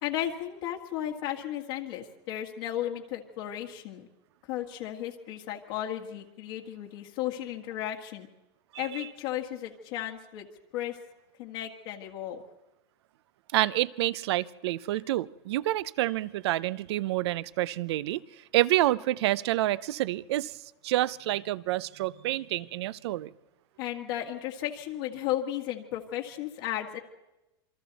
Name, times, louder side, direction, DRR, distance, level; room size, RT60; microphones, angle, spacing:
voice 1, 0.0-4.1 4.5-8.3 8.8-10.5 10.7-11.0 11.4-12.4 23.8-27.0, left 12 dB, 60° left, 1 dB, 1.9 m, -34 dB
voice 2, 8.7-9.1 13.5-18.2 18.5-20.5 20.8-23.3, right 16 dB, 75° right, 19 dB, 0.6 m, -28 dB
27.5 x 23.5 x 4.1 m, 0.97 s
supercardioid pair, 145°, 14 cm